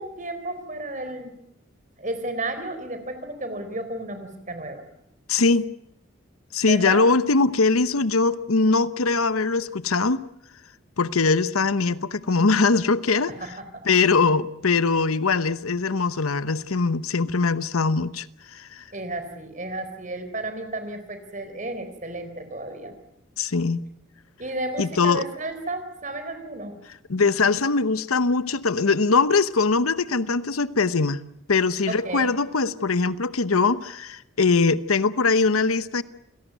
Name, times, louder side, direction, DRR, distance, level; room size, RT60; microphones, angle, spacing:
voice 1, 0.0-1.3 2.0-4.8 6.6-7.0 13.3-13.8 18.9-22.9 24.4-26.7 31.9-32.3, right 2 dB, 35° right, 8 dB, 4.1 m, -33 dB
voice 2, 5.3-5.7 6.5-10.2 11.0-13.3 13.9-18.3 18.5-18.8 23.4-23.8 24.8-25.3 27.1-31.2 31.5-36.0, left 4 dB, 90° left, 15 dB, 0.9 m, -21 dB
28.5 x 17.5 x 9.3 m, 0.82 s
head